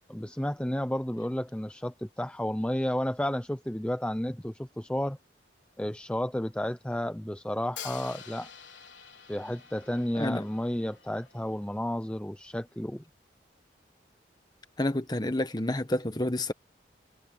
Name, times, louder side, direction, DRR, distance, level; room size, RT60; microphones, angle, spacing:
voice 1, 0.1-5.2 5.8-8.5 9.3-13.0, left 1 dB, 5° left, 0.5 m, -32 dB
Hi-hat, 7.8-11.7, left 9 dB, 85° left, 4.4 m, -47 dB
voice 2, 14.8-16.5, left 1 dB, 20° left, 1.2 m, -29 dB
head